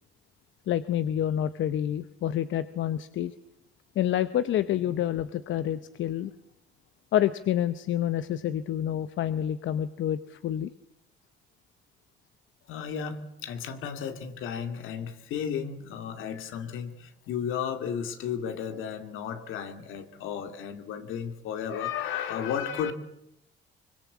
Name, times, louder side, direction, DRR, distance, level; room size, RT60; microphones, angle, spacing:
voice 1, 0.7-3.3 3.9-6.3 7.1-10.7, left 11 dB, 75° left, 13 dB, 0.9 m, -28 dB
voice 2, 12.6-22.9, left 8 dB, 90° left, 8 dB, 2.4 m, -34 dB
24.0 x 22.0 x 8.5 m, 0.80 s
cardioid pair, 90°, 20 cm